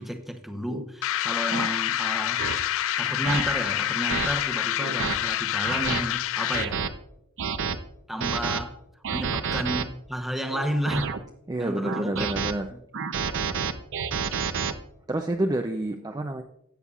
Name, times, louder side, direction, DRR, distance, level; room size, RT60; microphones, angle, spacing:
voice 1, 0.0-2.7 3.0-6.8 8.1-8.8 9.1-11.2 11.6-12.3 12.7-12.8, equal, ahead, 0.8 m, -32 dB
sound 1, 0.7-0.9 1.5-1.7 2.4-2.6 3.2-3.4 4.1-4.3 4.8-5.2 5.6-6.0 6.5-6.9 7.4-7.8 8.2-8.6 9.0-9.8 10.5-11.2 11.8-12.5 12.9-14.7, right 6 dB, 60° right, 0.6 m, -29 dB
sound 2, 1.0-6.8, left 12 dB, 65° left, 0.3 m, -27 dB
voice 2, 11.5-12.7 15.1-16.4, right 1 dB, 20° right, 0.4 m, -28 dB
13.5 x 8.4 x 2.4 m
head